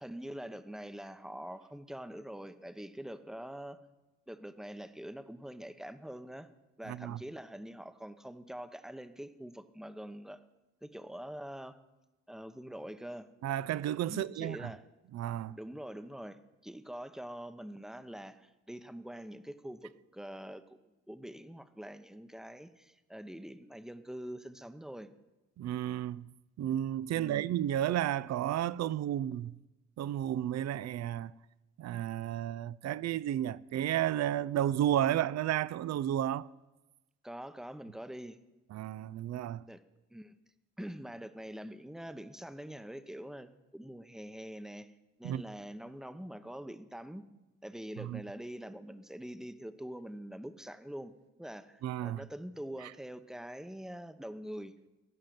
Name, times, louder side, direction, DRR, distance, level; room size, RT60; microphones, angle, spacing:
voice 1, 0.0-3.8 4.3-6.5 6.8-10.4 10.8-11.8 12.3-13.3 14.1-14.8 15.6-20.8 21.1-25.1 27.1-27.5 37.2-38.4 39.7-39.8 40.1-40.3 40.8-44.9 45.2-47.2 47.6-51.1 51.4-54.7, equal, ahead, 0.8 m, -44 dB
voice 2, 6.9-7.2 13.4-14.7 15.1-15.6 25.6-26.3 26.6-29.5 30.0-31.3 31.8-36.5 38.7-39.6 45.2-45.4 48.0-48.2 51.8-52.2, right 11 dB, 60° right, 0.5 m, -32 dB
16.5 x 5.7 x 9.2 m
cardioid pair, 90°, 30 cm